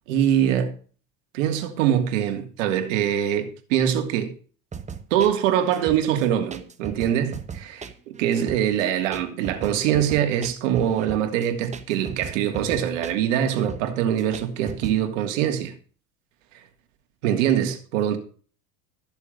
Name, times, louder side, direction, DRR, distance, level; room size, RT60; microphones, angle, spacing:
voice 1, 0.1-0.7 1.3-4.3 5.1-15.7 17.2-18.2, right 10 dB, 85° right, 2.8 m, -23 dB
sound 1, 4.7-15.0, right 6 dB, 20° right, 1.2 m, -37 dB
14.0 x 7.1 x 5.3 m
supercardioid pair, 115°, 37 cm